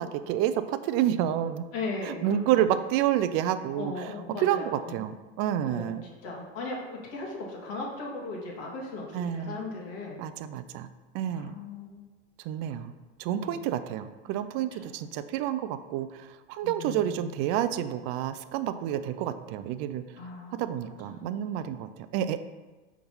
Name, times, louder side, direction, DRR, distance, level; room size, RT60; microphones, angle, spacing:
voice 1, 0.0-1.6 2.0-4.1 4.4-6.0 9.1-9.6 10.2-10.9 11.1-11.6 12.4-12.9 13.2-20.0 20.5-22.4, right 11 dB, 45° right, 12 dB, 0.4 m, -29 dB
voice 2, 1.7-2.4 3.7-5.0 5.7-10.2 11.3-12.0 13.4-13.6 14.9-15.0 16.6-17.3 20.2-20.6 21.1-21.4, left 3 dB, 50° left, -3 dB, 1.9 m, -38 dB
5.9 x 3.6 x 5.4 m, 1.2 s
supercardioid pair, 120°, 33 cm